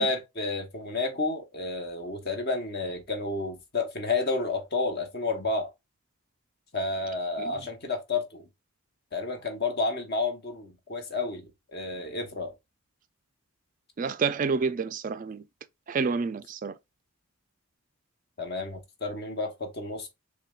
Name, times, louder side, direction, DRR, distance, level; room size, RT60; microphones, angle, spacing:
voice 1, 0.0-5.7 6.7-8.4 9.1-12.5 18.4-20.1, left 3 dB, 45° left, 0.9 m, -31 dB
voice 2, 14.0-15.4 15.9-16.8, right 5 dB, 35° right, 0.3 m, -29 dB
6.7 x 2.3 x 2.3 m
head